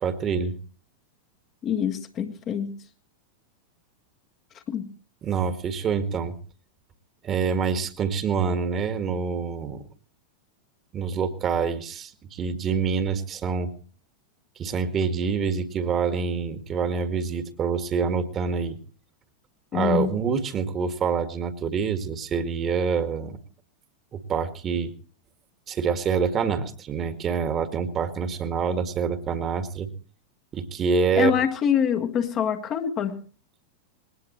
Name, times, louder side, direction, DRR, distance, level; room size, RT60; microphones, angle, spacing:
voice 1, 0.0-0.6 5.2-6.4 7.2-9.8 10.9-13.7 14.6-18.8 19.7-23.4 24.1-24.9 25.7-29.9 30.5-31.3, right 6 dB, 30° right, 1.9 m, -26 dB
voice 2, 1.6-2.8 4.7-4.9 19.7-20.2 31.2-33.2, left 8 dB, 30° left, 1.6 m, -25 dB
20.5 x 18.5 x 3.1 m
figure-of-eight pair, 90°, 0 cm